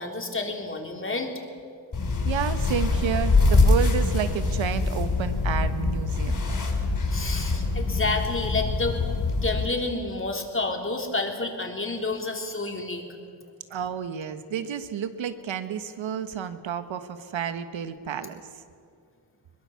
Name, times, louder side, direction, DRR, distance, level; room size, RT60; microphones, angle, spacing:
voice 1, 0.0-1.3 7.1-9.0 9.4-13.0, left 3 dB, 25° left, 2 dB, 3.4 m, -29 dB
sound 1, 1.9-9.7, left 3 dB, 45° left, 5.6 m, -24 dB
voice 2, 2.2-6.4 13.7-18.4, right 8 dB, 75° right, 10 dB, 1.5 m, -30 dB
22.5 x 21.0 x 7.2 m, 2.3 s
cardioid pair, 90°, 47 cm